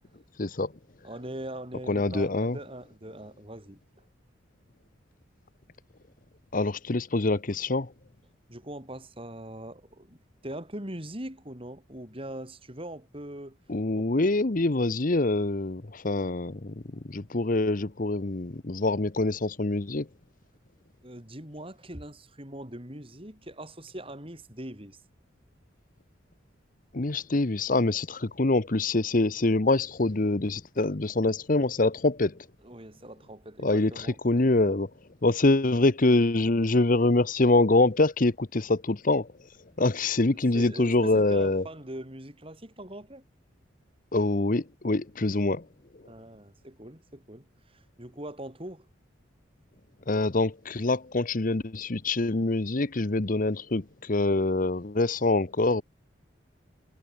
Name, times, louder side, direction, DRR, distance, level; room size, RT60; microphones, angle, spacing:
voice 1, 0.4-0.7 1.9-2.6 6.5-7.9 13.7-16.7 17.0-20.1 26.9-32.3 33.6-34.9 35.2-39.3 39.8-41.7 44.1-45.6 50.1-55.8, left 2 dB, 45° left, 0.9 m, -25 dB
voice 2, 1.0-3.8 8.5-13.6 13.9-14.1 21.0-25.0 32.6-34.2 40.5-43.2 46.0-48.9, right 1 dB, 30° right, 4.5 m, -41 dB
head